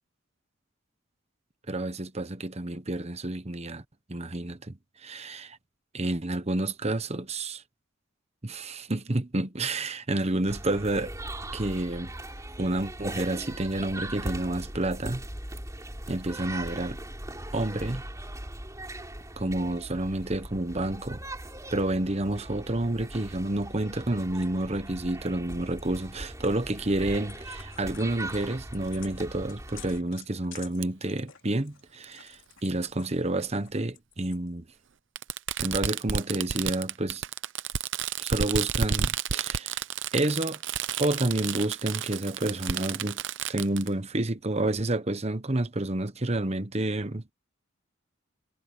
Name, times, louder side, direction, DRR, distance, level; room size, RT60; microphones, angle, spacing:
voice 1, 1.7-3.8 4.1-5.6 5.9-7.6 8.4-11.1 11.5-12.1 12.6-15.2 16.1-17.0 17.5-18.0 19.4-21.2 21.7-34.6 35.6-37.2 38.2-39.8 40.1-40.6 41.0-43.2 43.5-47.3, right 1 dB, 30° right, 1.1 m, -29 dB
sound 1, 10.5-30.0, right 1 dB, 15° right, 3.9 m, -40 dB
sound 2, 24.4-25.8 26.4-26.8 27.1-33.1 33.5-34.5, left 11 dB, 70° left, 2.9 m, -51 dB
Fireworks, 30.8-30.9 32.0-32.1 33.4-33.5 35.2-43.9, right 8 dB, 60° right, 0.7 m, -31 dB
head